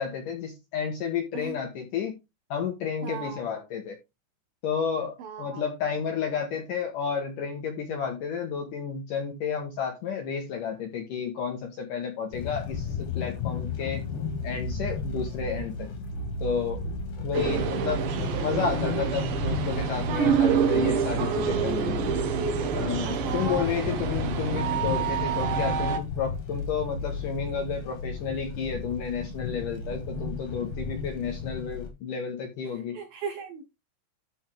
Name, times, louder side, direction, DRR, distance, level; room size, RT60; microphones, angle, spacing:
voice 1, 0.0-2.2 2.5-4.0 4.6-14.1 14.4-15.9 16.4-16.8 17.2-18.1 18.4-22.0 22.7-33.0, left 6 dB, 70° left, 2.1 m, -31 dB
voice 2, 3.0-3.4 5.2-5.6 23.0-23.7 24.2-24.9 32.9-33.6, right 6 dB, 85° right, 2.0 m, -36 dB
sound 1, 12.3-31.9, left 3 dB, 45° left, 2.4 m, -34 dB
sound 2, 17.3-26.0, right 7 dB, 65° right, 2.3 m, -27 dB
13.0 x 4.4 x 3.5 m
omnidirectional pair, 5.4 m